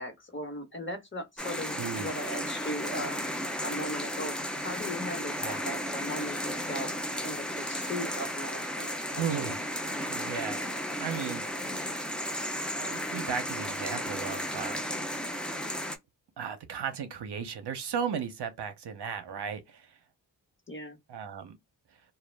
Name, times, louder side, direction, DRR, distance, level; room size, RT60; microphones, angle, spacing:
voice 1, 0.0-4.3 4.6-6.9 7.2-9.5 20.7-21.0, left 1 dB, 25° left, 1.2 m, -38 dB
sound 1, 1.4-16.0, equal, ahead, 0.6 m, -34 dB
voice 2, 1.8-2.1 5.4-5.6 9.2-9.6 10.1-10.6 11.0-11.5 12.8-14.8 16.4-19.9 21.1-21.6, right 7 dB, 65° right, 0.7 m, -35 dB
2.3 x 2.0 x 3.2 m
cardioid pair, 55°, 43 cm